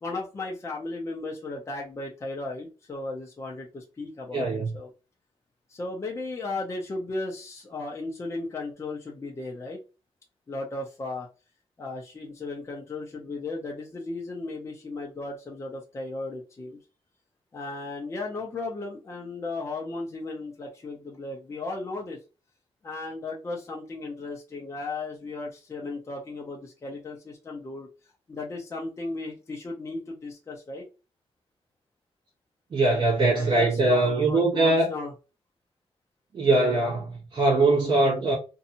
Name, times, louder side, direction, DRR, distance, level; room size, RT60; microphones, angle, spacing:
voice 1, 0.0-4.4 4.7-4.9 5.7-9.8 10.5-11.3 11.8-16.8 17.5-22.2 22.8-27.9 28.3-30.8 33.3-35.1, left 3 dB, 25° left, 0.6 m, -35 dB
voice 2, 4.3-4.8 32.7-34.9 36.3-38.4, right 2 dB, 45° right, 0.9 m, -22 dB
2.6 x 2.3 x 2.8 m
wide cardioid pair, 155°, 11 cm